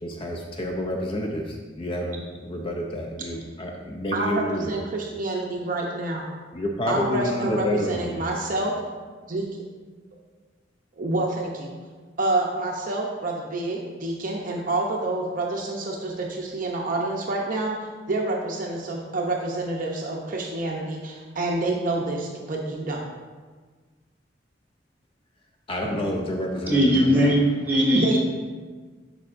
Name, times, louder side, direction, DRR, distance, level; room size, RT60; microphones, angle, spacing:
voice 1, 0.0-4.7 6.5-8.3 25.7-27.3, left 1 dB, 30° left, 1 dB, 0.5 m, -29 dB
voice 2, 4.1-6.3 6.9-8.8 9.3-9.6 11.0-11.7 12.2-17.8 18.1-23.0 27.9-28.2, right 2 dB, 45° right, -1 dB, 0.7 m, -28 dB
voice 3, 26.7-28.2, equal, 10° right, -8 dB, 2.0 m, -19 dB
11.0 x 4.8 x 2.5 m, 1.4 s
head